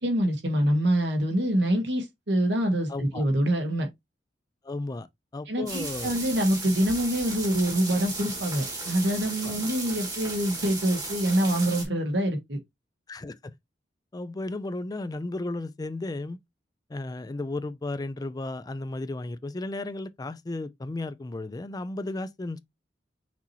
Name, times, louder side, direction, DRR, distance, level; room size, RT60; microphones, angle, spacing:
voice 1, 0.0-3.9 5.5-12.6, right 1 dB, 70° right, 1.5 m, -25 dB
voice 2, 2.9-3.2 4.6-5.1 5.3-6.1 9.4-9.6 13.1-13.5 14.1-16.4 16.9-22.6, left 2 dB, 20° left, 0.4 m, -34 dB
sound 1, 5.7-11.8, right 3 dB, 20° right, 1.7 m, -35 dB
6.0 x 2.9 x 2.8 m
head